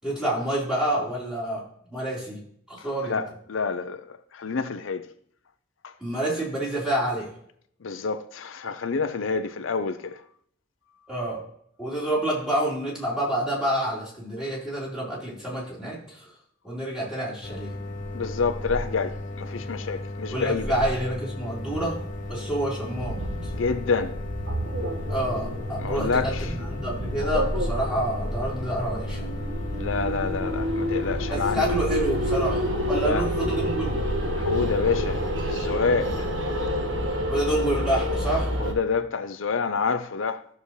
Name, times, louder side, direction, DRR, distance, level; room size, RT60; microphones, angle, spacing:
voice 1, 0.0-1.6 1.9-2.4 2.7-3.2 6.0-7.3 11.1-11.4 11.8-16.3 16.6-17.7 20.3-22.0 22.3-23.2 23.4-23.5 25.1-29.3 31.3-34.0 37.3-38.5, right 1 dB, 5° right, 4.2 m, -28 dB
voice 2, 2.8-5.1 5.8-5.9 7.8-10.2 18.1-20.7 23.5-24.2 25.8-26.5 29.7-31.6 32.9-33.3 34.3-36.3 38.6-40.4, left 5 dB, 80° left, 0.6 m, -28 dB
sound 1, 17.4-35.4, left 1 dB, 40° left, 1.0 m, -35 dB
sound 2, 21.5-38.7, equal, 70° right, 1.6 m, -29 dB
14.0 x 6.7 x 3.2 m
head